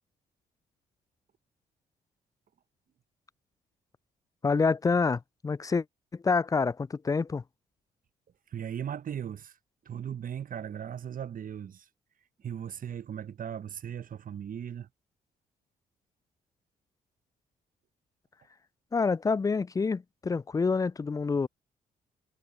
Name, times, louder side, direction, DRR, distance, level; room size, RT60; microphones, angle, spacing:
voice 1, 4.4-5.8 6.1-7.4 18.9-21.5, left 4 dB, 20° left, 0.3 m, -27 dB
voice 2, 8.5-9.5 9.9-11.8 12.4-14.9, right 9 dB, 50° right, 0.9 m, -37 dB
hypercardioid pair, 50°, 18 cm